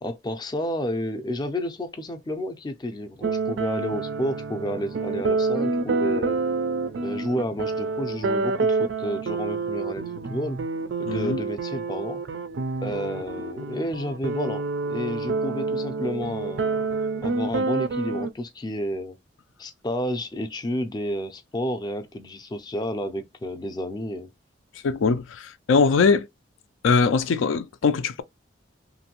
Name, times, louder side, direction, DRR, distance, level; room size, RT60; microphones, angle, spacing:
voice 1, 0.0-6.4 7.0-10.6 11.0-12.2 12.8-19.2 19.6-24.3, equal, 20° left, 0.4 m, -31 dB
sound 1, 3.2-18.3, right 3 dB, 65° right, 0.4 m, -28 dB
voice 2, 11.1-11.4 24.8-26.3 26.8-28.2, left 5 dB, 85° left, 0.4 m, -21 dB
2.9 x 2.6 x 2.9 m
head